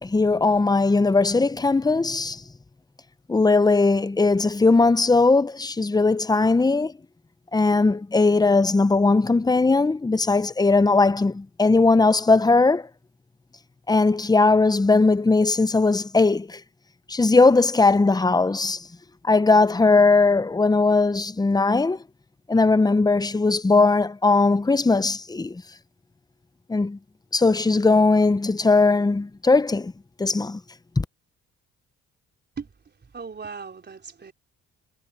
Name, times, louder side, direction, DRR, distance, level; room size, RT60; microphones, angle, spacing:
voice 1, 0.0-2.4 3.3-6.9 7.5-12.9 13.9-16.6 17.1-18.8 19.2-22.0 22.5-25.6 26.7-27.0 27.3-29.9 30.2-30.6 31.0-31.1, left 3 dB, 15° left, 0.7 m, -19 dB
voice 2, 33.1-34.3, right 5 dB, 35° right, 3.8 m, -37 dB
cardioid pair, 90°, 30 cm